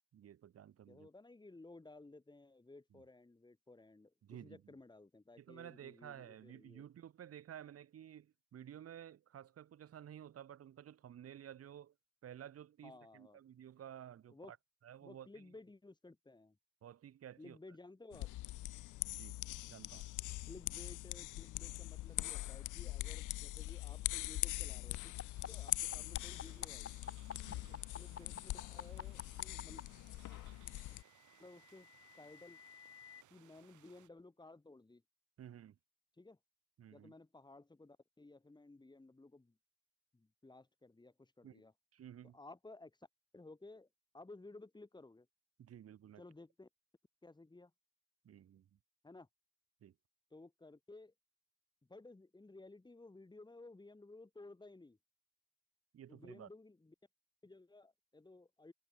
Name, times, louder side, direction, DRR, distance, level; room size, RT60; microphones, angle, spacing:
voice 1, 0.1-1.1 2.9-3.0 4.2-4.8 5.4-11.9 12.2-14.6 14.8-15.4 16.8-17.6 19.1-19.4 19.7-20.1 27.4-27.8 35.4-35.8 36.8-37.1 41.4-41.6 41.9-42.4 45.6-46.2 48.2-48.8 49.8-49.9 55.9-56.5, right 10 dB, 50° right, 1.1 m, -53 dB
voice 2, 0.9-4.1 4.4-6.8 12.8-13.4 14.3-14.5 15.0-16.6 17.4-18.3 20.5-25.1 25.5-27.0 27.7-29.8 31.4-31.9 32.2-32.6 33.3-35.0 36.2-36.4 36.9-39.6 40.1-41.7 42.3-43.0 43.3-43.9 44.1-45.3 46.2-46.7 47.2-47.7 49.0-49.3 50.3-51.1 51.8-55.0 56.1-56.9 57.4-58.7, left 2 dB, 15° left, 2.4 m, -57 dB
sound 1, 18.1-31.0, left 17 dB, 85° left, 0.9 m, -42 dB
sound 2, 25.2-29.8 31.0-33.2, left 8 dB, 50° left, 2.2 m, -49 dB
sound 3, 25.3-34.1, right 13 dB, 75° right, 2.7 m, -67 dB
cardioid pair, 90°, 30 cm